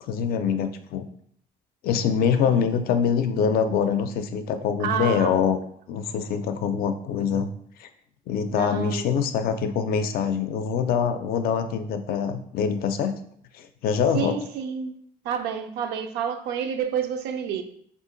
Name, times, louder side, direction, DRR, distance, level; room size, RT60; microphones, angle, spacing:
voice 1, 0.0-1.1 1.8-5.6 5.9-7.5 7.8-7.9 8.3-13.1 13.5-14.3, left 7 dB, 65° left, 8 dB, 0.4 m, -24 dB
voice 2, 2.4-2.8 4.8-5.3 8.5-9.1 14.1-15.0 15.2-17.6, right 7 dB, 85° right, 7 dB, 0.4 m, -29 dB
2.8 x 2.5 x 3.8 m, 0.65 s
cardioid pair, 110°, 17 cm